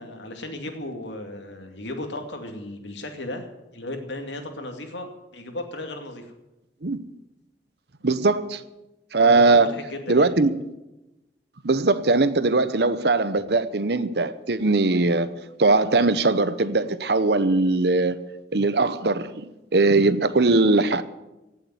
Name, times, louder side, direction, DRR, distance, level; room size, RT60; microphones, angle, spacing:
voice 1, 0.0-6.3 9.2-10.3, left 1 dB, 80° left, 2.4 m, -35 dB
voice 2, 8.0-8.6 9.1-9.7 10.1-10.5 11.6-18.2 18.5-21.0, right 3 dB, 65° right, 0.8 m, -20 dB
16.5 x 7.3 x 9.5 m
head